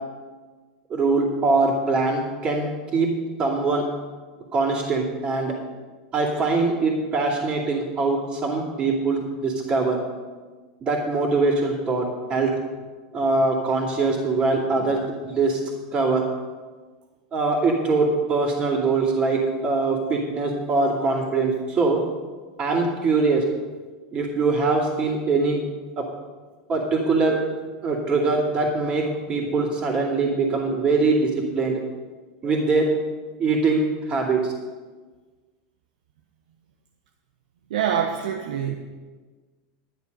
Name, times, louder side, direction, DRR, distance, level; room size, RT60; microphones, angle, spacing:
voice 1, 0.9-3.1 3.4-3.8 4.5-5.5 6.1-10.0 10.8-12.5 13.1-15.6 15.9-16.2 17.3-22.0 22.6-23.4 24.1-25.6 26.0-26.1 26.7-27.4 27.8-31.8 32.4-32.9 33.4-33.8 34.1-34.5, right 3 dB, 25° right, -9 dB, 2.6 m, -22 dB
voice 2, 37.7-38.7, right 8 dB, 85° right, 3 dB, 1.0 m, -25 dB
12.0 x 9.8 x 5.4 m, 1.4 s
supercardioid pair, 150°, 4 cm